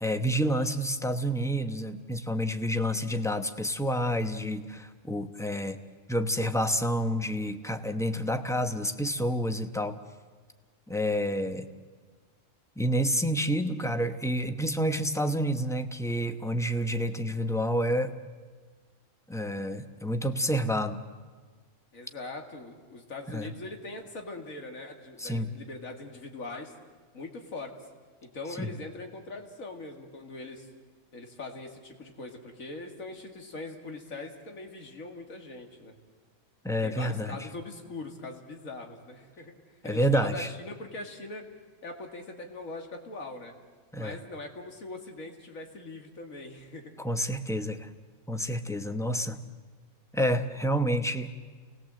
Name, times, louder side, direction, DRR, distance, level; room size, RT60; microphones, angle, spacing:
voice 1, 0.0-5.8 6.1-10.0 10.9-11.7 12.8-18.1 19.3-21.0 23.3-23.5 25.2-25.5 28.6-28.7 36.6-37.5 39.8-40.5 43.9-44.2 47.0-47.9 48.3-49.4 50.1-51.3, equal, 5° left, 8 dB, 0.8 m, -29 dB
voice 2, 21.9-26.7 27.1-27.7 28.2-30.7 31.1-35.9 36.8-41.5 41.8-43.5 44.0-47.0, left 2 dB, 70° left, 3 dB, 2.6 m, -41 dB
30.0 x 19.5 x 7.7 m, 1.5 s
omnidirectional pair, 1.5 m